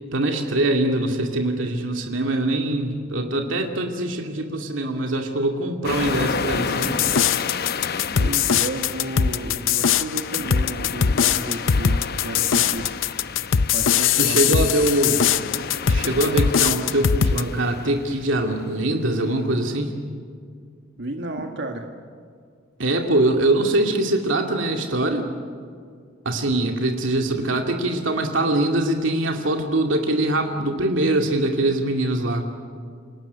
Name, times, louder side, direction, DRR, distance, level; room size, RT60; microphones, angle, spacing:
voice 1, 0.1-7.0 14.2-15.2 15.9-20.0 22.8-25.3 26.2-32.5, right 1 dB, 85° right, 3 dB, 2.3 m, -23 dB
sound 1, 5.8-18.4, left 5 dB, 55° left, 0.9 m, -31 dB
sound 2, 6.8-17.4, left 7 dB, 85° left, 0.6 m, -21 dB
voice 2, 8.2-12.9 13.7-14.6 21.0-21.8, right 1 dB, 65° right, 3 dB, 1.8 m, -32 dB
28.0 x 18.0 x 9.6 m, 2.1 s
head